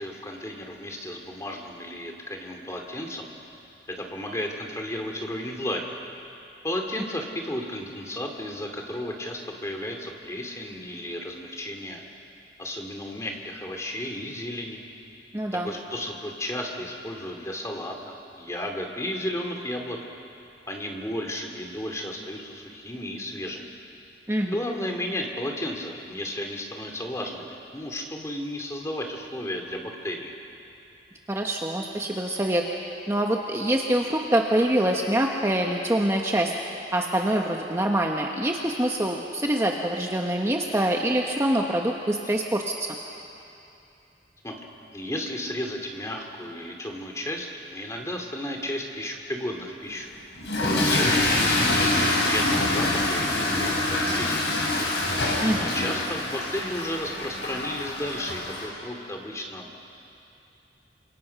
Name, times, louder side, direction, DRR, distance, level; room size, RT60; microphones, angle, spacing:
voice 1, 0.0-3.3 3.9-6.0 6.6-12.0 12.6-14.8 15.6-20.0 20.7-23.7 24.5-30.3 44.4-44.5 44.9-50.1 50.7-54.9 55.6-59.8, left 1 dB, 15° left, 2 dB, 2.5 m, -33 dB
voice 2, 15.3-15.7 24.3-24.6 31.3-32.6 33.1-36.5 36.9-42.9 55.4-55.7, right 1 dB, 15° right, 0 dB, 1.2 m, -25 dB
Toilet flush / Fill (with liquid), 50.4-58.7, left 2 dB, 75° left, 6.1 m, -25 dB
29.0 x 26.5 x 5.8 m, 2.8 s
head